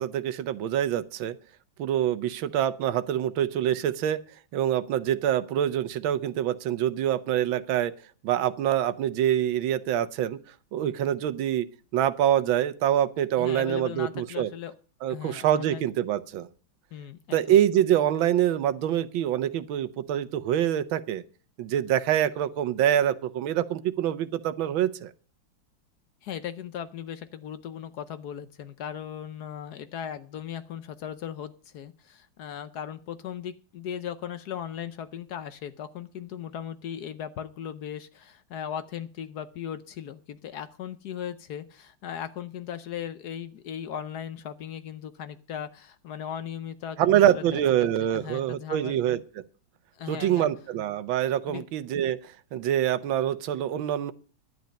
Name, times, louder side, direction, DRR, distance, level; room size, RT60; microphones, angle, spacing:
voice 1, 0.0-1.3 1.8-4.2 4.5-7.9 8.2-10.4 10.7-11.6 11.9-14.5 15.0-16.5 17.3-21.2 21.6-25.1 47.0-49.2 50.1-54.1, right 11 dB, 80° right, 14 dB, 1.6 m, -25 dB
voice 2, 13.4-14.8 15.1-15.9 16.9-17.8 26.2-49.0 49.9-50.5 51.5-51.7, left 9 dB, 65° left, 12 dB, 1.1 m, -38 dB
11.5 x 9.6 x 5.2 m, 0.40 s
omnidirectional pair, 2.1 m